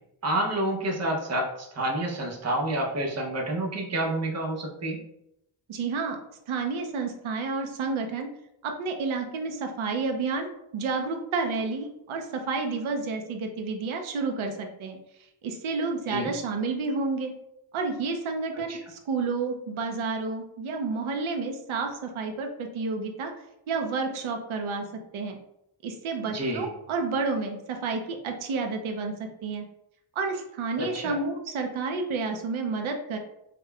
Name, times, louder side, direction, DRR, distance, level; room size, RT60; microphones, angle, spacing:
voice 1, 0.2-5.0 16.1-16.3 18.7-18.8 26.3-26.7 30.8-31.2, right 1 dB, 35° right, -1 dB, 0.6 m, -29 dB
voice 2, 5.7-6.2 6.5-8.3 8.6-10.5 10.7-15.0 15.4-17.3 17.7-23.3 23.7-24.9 25.1-25.4 25.8-29.1 29.4-29.6 30.2-33.2, right 4 dB, 85° right, 4 dB, 0.6 m, -30 dB
5.0 x 2.1 x 2.2 m, 0.82 s
wide cardioid pair, 165°, 47 cm